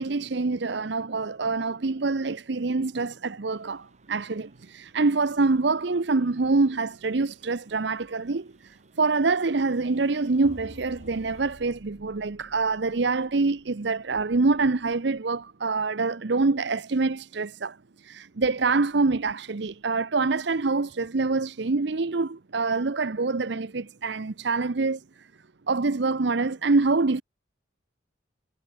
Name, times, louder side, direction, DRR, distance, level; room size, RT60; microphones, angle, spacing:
voice 1, 0.0-8.5 9.0-17.8 18.0-25.0 25.7-27.2, right 3 dB, 60° right, 0.7 m, -25 dB
sound 1, 3.5-11.6, right 3 dB, 35° right, 8.0 m, -63 dB
sound 2, 10.1-14.1, left 1 dB, 60° left, 3.9 m, -50 dB
head